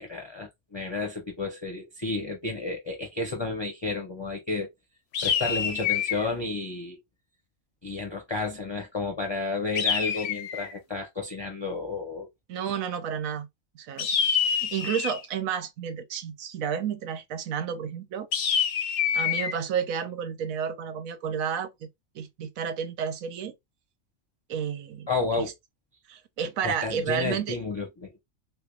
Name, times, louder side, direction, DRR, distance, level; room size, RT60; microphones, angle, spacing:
voice 1, 0.0-4.7 5.2-7.0 7.8-12.3 25.1-25.5 26.6-28.2, left 3 dB, 30° left, 0.6 m, -31 dB
sound 1, 5.1-6.3 9.8-10.8 14.0-15.3 18.3-19.5, left 7 dB, 65° left, 0.8 m, -26 dB
voice 2, 12.5-13.5 13.7-14.1 14.4-18.3 19.1-21.9 22.1-23.5 24.5-25.1 25.4-25.5 26.1-27.6, right 7 dB, 90° right, 1.1 m, -31 dB
3.5 x 3.3 x 2.3 m
omnidirectional pair, 1.4 m